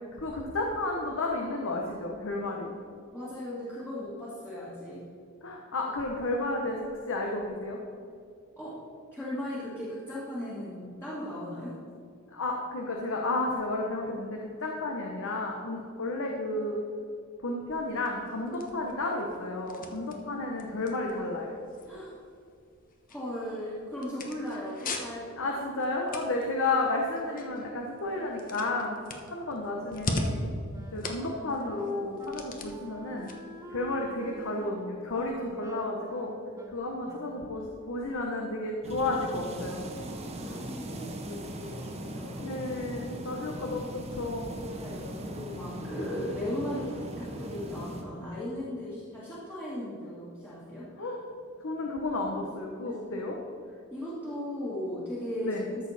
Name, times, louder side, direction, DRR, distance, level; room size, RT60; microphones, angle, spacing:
voice 1, 0.1-2.7 5.4-7.8 12.3-16.8 17.4-21.6 25.4-29.0 29.3-30.5 30.9-33.3 33.7-36.3 36.7-39.9 40.4-40.6 42.4-44.6 45.8-46.0 51.0-51.2 51.6-53.4 55.4-55.6, left 2 dB, 65° left, 0 dB, 1.0 m, -32 dB
voice 2, 3.1-5.0 8.6-8.8 9.1-11.7 15.7-15.8 20.0-20.2 21.9-22.2 23.1-25.5 26.3-26.5 31.2-31.6 37.6-37.7 40.1-42.6 43.2-43.7 44.7-50.9 52.9-53.2 53.9-55.6, left 1 dB, 10° left, -10 dB, 1.8 m, -37 dB
sound 1, 17.7-34.7, left 2 dB, 40° left, 1.0 m, -41 dB
Wind instrument woodwind instrument, 30.2-37.7, right 1 dB, 15° right, 0.6 m, -47 dB
sound 2, 38.8-48.0, right 1 dB, 30° right, 1.0 m, -39 dB
13.5 x 6.5 x 4.2 m, 2.4 s
head